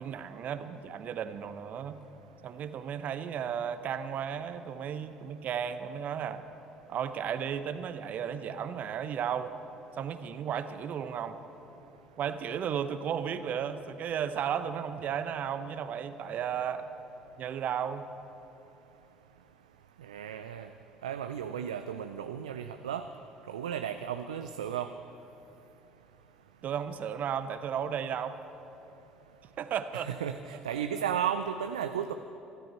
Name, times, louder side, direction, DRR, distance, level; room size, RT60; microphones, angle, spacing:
voice 1, 0.0-2.0 2.4-6.4 6.9-9.5 10.0-11.4 12.2-16.9 17.4-18.0 26.6-28.4 29.6-30.1 30.7-31.0, right 8 dB, 55° right, 11 dB, 0.8 m, -34 dB
voice 2, 20.0-20.7 21.0-23.1 23.5-24.9 30.1-32.1, right 9 dB, 85° right, 8 dB, 0.4 m, -34 dB
24.0 x 12.5 x 4.4 m, 2.9 s
hypercardioid pair, 55°, 3 cm